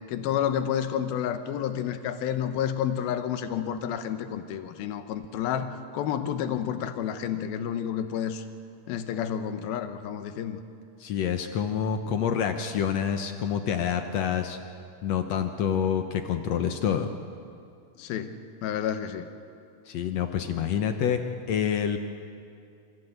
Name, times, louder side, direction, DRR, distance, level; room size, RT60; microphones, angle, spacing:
voice 1, 0.1-8.4 8.9-10.6 18.0-19.3, left 9 dB, 90° left, 9 dB, 2.9 m, -30 dB
voice 2, 11.0-14.6 15.0-17.1 19.9-22.0, left 8 dB, 75° left, 7 dB, 1.6 m, -27 dB
27.0 x 15.5 x 8.0 m, 2.5 s
omnidirectional pair, 4.2 m